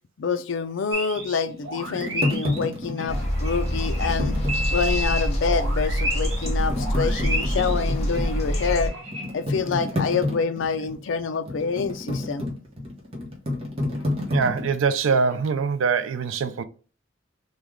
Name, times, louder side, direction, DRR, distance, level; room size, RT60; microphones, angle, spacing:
voice 1, 0.2-4.4 4.7-8.9 9.3-12.5 13.9-14.0, left 5 dB, 75° left, 0.4 m, -27 dB
sound 1, 0.9-1.4 1.6-6.5 6.7-9.3, right 1 dB, 65° right, 1.1 m, -32 dB
sound 2, 1.2-5.2 5.6-5.7 6.2-14.7, left 1 dB, 30° right, 0.9 m, -30 dB
sound 3, 3.1-8.9, equal, 35° left, 0.8 m, -25 dB
voice 2, 14.3-16.6, right 5 dB, 90° right, 0.4 m, -23 dB
3.2 x 2.3 x 3.5 m
head